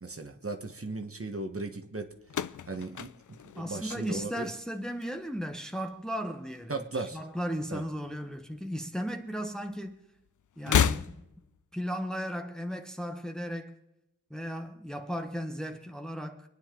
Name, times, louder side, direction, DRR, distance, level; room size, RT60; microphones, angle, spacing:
voice 1, 0.0-2.1 2.7-4.5 6.7-7.2 7.7-7.8, right 3 dB, 40° right, 1.3 m, -37 dB
sound 1, 2.3-4.6 4.9-5.5 6.6-7.6 7.8-7.9 9.1-9.2 10.6-11.6, left 8 dB, 65° left, 0.4 m, -31 dB
voice 2, 3.6-10.0 10.6-11.2 11.7-13.8 14.3-16.5, equal, ahead, 1.0 m, -36 dB
25.0 x 9.8 x 3.8 m
wide cardioid pair, 70°, 33 cm